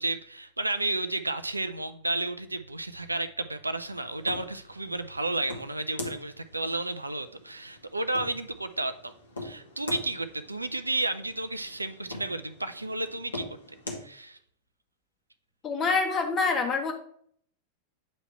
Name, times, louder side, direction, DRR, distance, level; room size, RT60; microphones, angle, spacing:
voice 1, 0.0-9.1 9.4-13.5 14.0-14.4, right 2 dB, 85° right, 11 dB, 0.4 m, -32 dB
sound 1, 3.8-14.1, left 2 dB, 75° left, 1.2 m, -43 dB
voice 2, 15.6-16.9, left 4 dB, 25° left, 3 dB, 1.2 m, -26 dB
8.6 x 3.2 x 4.5 m, 0.62 s
figure-of-eight pair, 90°, 0 cm